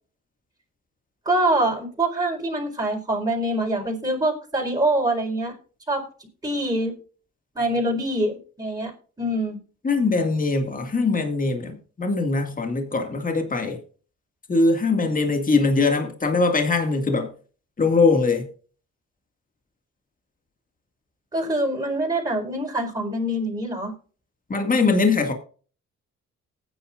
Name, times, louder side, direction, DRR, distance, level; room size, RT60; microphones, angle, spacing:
voice 1, 1.2-5.5 5.9-6.0 6.4-6.9 7.5-8.9 9.2-9.6 21.3-23.9, right 1 dB, 10° right, 4.6 m, -24 dB
voice 2, 9.8-13.8 14.5-17.3 17.8-18.5 24.5-25.3, left 3 dB, 25° left, 2.2 m, -21 dB
19.0 x 9.5 x 2.5 m
cardioid pair, 90°, 30 cm